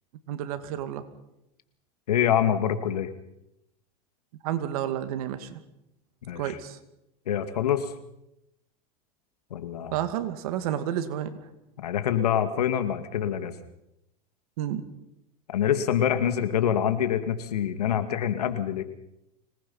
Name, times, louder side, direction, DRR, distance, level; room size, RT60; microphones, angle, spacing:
voice 1, 0.3-1.1 4.4-5.6 6.4-6.8 9.9-11.3 14.6-14.8, right 11 dB, 70° right, 9 dB, 2.4 m, -30 dB
voice 2, 2.1-3.1 6.3-6.6 7.3-7.9 9.5-10.0 11.8-13.5 15.5-18.8, left 9 dB, 90° left, 9 dB, 2.2 m, -25 dB
25.5 x 19.5 x 5.6 m, 0.83 s
hypercardioid pair, 110°, 19 cm